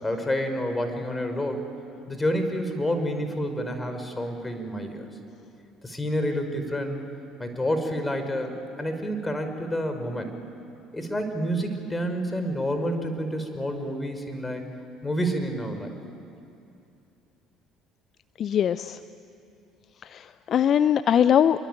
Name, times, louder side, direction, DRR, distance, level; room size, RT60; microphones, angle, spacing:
voice 1, 0.0-1.6 2.1-5.1 5.8-7.0 7.4-10.3 10.9-14.6 15.0-15.9, equal, 15° left, 6 dB, 5.0 m, -29 dB
voice 2, 18.4-19.0 20.0-21.7, left 9 dB, 50° left, 14 dB, 0.6 m, -22 dB
26.5 x 23.5 x 9.2 m, 2.6 s
hypercardioid pair, 60°, 0 cm